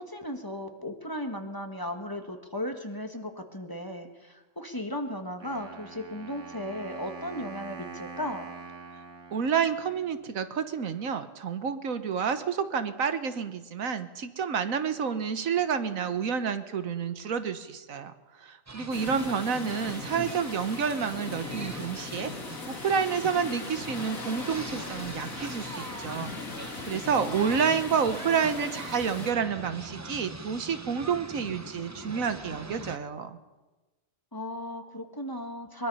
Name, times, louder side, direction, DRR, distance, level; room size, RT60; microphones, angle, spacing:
voice 1, 0.0-8.5 19.1-19.3 19.5-19.7 34.3-35.9, left 1 dB, 15° left, 5 dB, 1.6 m, -36 dB
Wind instrument woodwind instrument, 5.4-10.4, right 5 dB, 65° right, 2.1 m, -44 dB
voice 2, 9.3-22.3 22.7-33.4, right 6 dB, 80° right, 10 dB, 1.5 m, -29 dB
sound 1, 18.7-33.0, right 2 dB, 20° right, 0.5 m, -43 dB
sound 2, 18.9-29.3, left 4 dB, 90° left, 2.4 m, -39 dB
22.5 x 22.0 x 5.5 m, 1.1 s
omnidirectional pair, 1.4 m